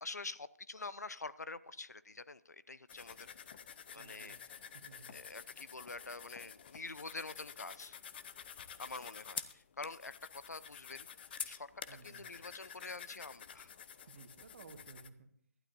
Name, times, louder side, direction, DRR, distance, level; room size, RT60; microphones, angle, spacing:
voice 1, 0.0-3.3 3.9-4.4 5.1-8.0 8.8-11.1 11.5-11.7 12.0-13.7, left 3 dB, 85° left, 16 dB, 0.7 m, -46 dB
sound 1, 2.9-15.1, left 8 dB, 40° left, 0.7 m, -49 dB
voice 2, 3.9-4.4 4.7-5.1 11.9-12.3 14.1-15.3, right 4 dB, 45° right, 6 dB, 1.7 m, -56 dB
19.5 x 12.5 x 2.7 m, 0.63 s
figure-of-eight pair, 150°, 9 cm